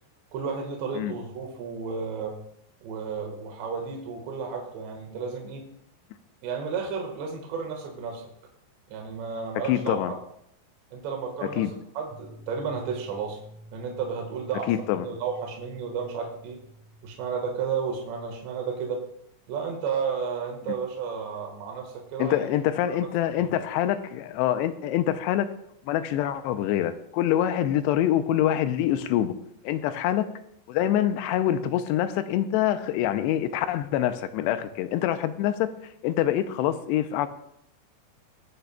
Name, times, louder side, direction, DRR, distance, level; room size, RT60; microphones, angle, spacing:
voice 1, 0.3-2.4 2.8-5.7 6.4-8.2 8.9-10.0 10.9-11.7 12.0-13.4 13.7-16.6 17.0-19.0 19.5-22.5 22.9-23.0, right 6 dB, 80° right, 2 dB, 3.6 m, -32 dB
voice 2, 9.7-10.1 11.6-11.7 14.7-15.1 22.2-25.5 25.9-29.3 29.6-30.3 30.7-35.7 36.0-37.3, left 11 dB, 85° left, 10 dB, 2.7 m, -25 dB
sound 1, 12.1-18.0, right 1 dB, 60° right, 2.5 m, -49 dB
22.0 x 8.5 x 2.3 m, 0.74 s
omnidirectional pair, 5.1 m